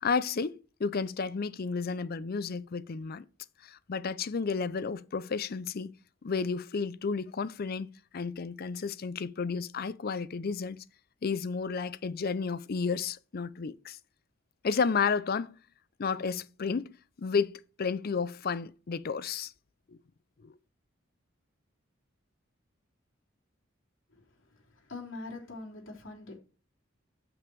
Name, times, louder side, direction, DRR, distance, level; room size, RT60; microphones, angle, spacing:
voice 1, 0.0-3.2 3.6-5.9 6.2-10.8 11.2-14.0 14.6-15.5 16.0-16.9 17.2-19.5 19.9-20.0 20.4-20.6, left 5 dB, 50° left, 0.5 m, -32 dB
voice 2, 24.7-26.4, left 3 dB, 70° left, 3.4 m, -43 dB
7.2 x 5.9 x 4.6 m
head